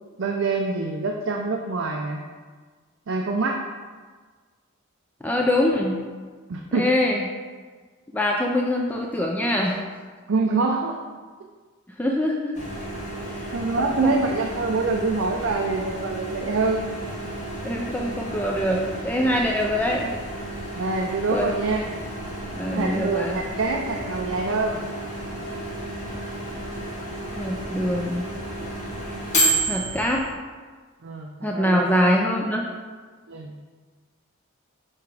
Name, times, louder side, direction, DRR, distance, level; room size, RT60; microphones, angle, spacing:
voice 1, 0.2-2.2 3.1-3.6 6.5-6.9 10.3-11.0 13.5-16.8 20.7-21.9 22.7-24.8 31.0-32.1 33.3-33.5, right 3 dB, 60° right, 1 dB, 0.5 m, -25 dB
voice 2, 5.2-6.0 6.7-7.3 8.1-9.8 12.0-12.5 13.3-13.5 13.8-14.1 17.6-20.1 21.3-21.5 22.5-23.4 27.3-28.3 29.7-30.2 31.4-32.7, left 1 dB, 10° left, -1 dB, 0.3 m, -24 dB
Microwave oven, 12.5-30.3, right 1 dB, 35° left, 1.9 m, -31 dB
6.7 x 3.4 x 4.8 m, 1.5 s
head